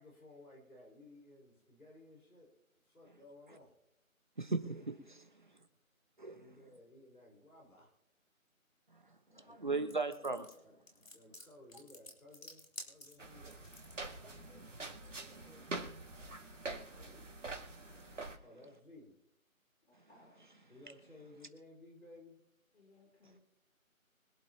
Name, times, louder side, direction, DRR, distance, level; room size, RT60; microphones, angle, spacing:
voice 1, 0.0-2.5 2.8-3.7 6.3-8.0 9.3-9.5 10.6-10.8 11.1-13.6 14.1-14.7 15.2-15.9 16.9-17.5 18.4-19.1 20.7-22.4, left 2 dB, 85° left, 5.1 m, -58 dB
voice 2, 4.4-5.6 6.2-6.4 8.9-9.2 9.5-10.5 14.2-14.4 15.1-15.2 16.5-17.0 17.9-18.4 19.9-20.1, right 3 dB, 35° right, 1.3 m, -40 dB
sound 1, 9.9-14.1, left 2 dB, 65° left, 3.8 m, -51 dB
sound 2, 13.2-18.4, right 2 dB, 60° right, 2.3 m, -45 dB
voice 3, 19.9-20.7 22.7-23.4, left 2 dB, 50° left, 3.9 m, -65 dB
25.0 x 8.4 x 2.9 m
figure-of-eight pair, 170°, 42 cm